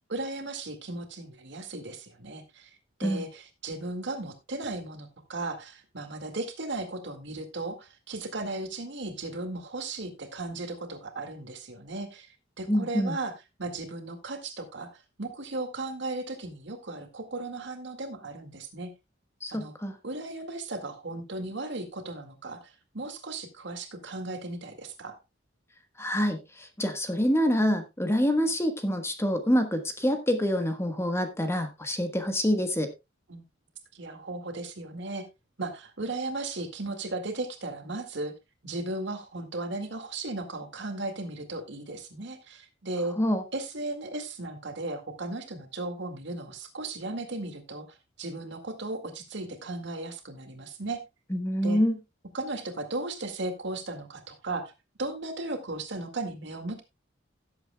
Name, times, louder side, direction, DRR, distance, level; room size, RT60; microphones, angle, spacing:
voice 1, 0.1-2.7 3.0-12.3 12.6-13.3 13.6-18.9 19.5-19.7 20.0-25.2 33.3-33.4 33.9-35.3 35.6-38.3 38.6-43.2 43.5-51.0 51.6-51.8 52.3-54.7 55.0-56.8, right 2 dB, 65° right, 6 dB, 2.0 m, -36 dB
voice 2, 12.7-13.2 19.4-19.9 26.0-32.9 43.2-43.4 51.3-51.9, equal, 15° left, 7 dB, 1.3 m, -26 dB
17.0 x 8.0 x 2.3 m, 0.23 s
head